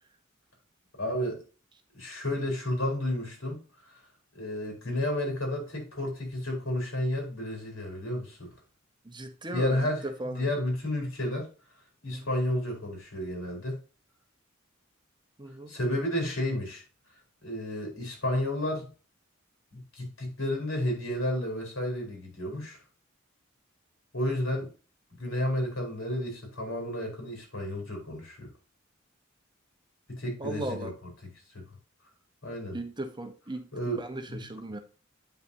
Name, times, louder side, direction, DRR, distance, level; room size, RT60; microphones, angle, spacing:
voice 1, 1.0-1.4 1.9-3.6 4.3-8.5 9.5-11.5 12.0-13.8 15.7-16.8 17.4-18.9 19.7-22.8 24.1-24.7 25.1-28.5 30.1-31.1 31.5-31.7 32.4-32.8 33.7-34.4, left 1 dB, 85° left, 4.8 m, -31 dB
voice 2, 9.0-10.4 12.1-12.3 15.4-15.7 30.4-30.9 32.7-33.6 34.0-34.8, right 1 dB, 25° right, 1.1 m, -37 dB
9.5 x 5.9 x 2.8 m
head